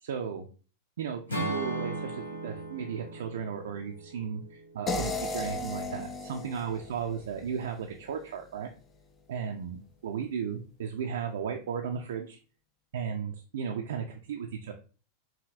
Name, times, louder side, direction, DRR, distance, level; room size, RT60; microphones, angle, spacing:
voice 1, 0.0-0.5 1.0-8.7 9.3-12.4 12.9-14.7, right 7 dB, 60° right, 2 dB, 0.4 m, -35 dB
Acoustic guitar / Strum, 1.3-5.4, right 2 dB, 80° left, 0.9 m, -37 dB
sound 1, 4.9-7.9, left 3 dB, 20° left, 0.4 m, -35 dB
4.8 x 2.7 x 2.5 m, 0.37 s
figure-of-eight pair, 90°, 0 cm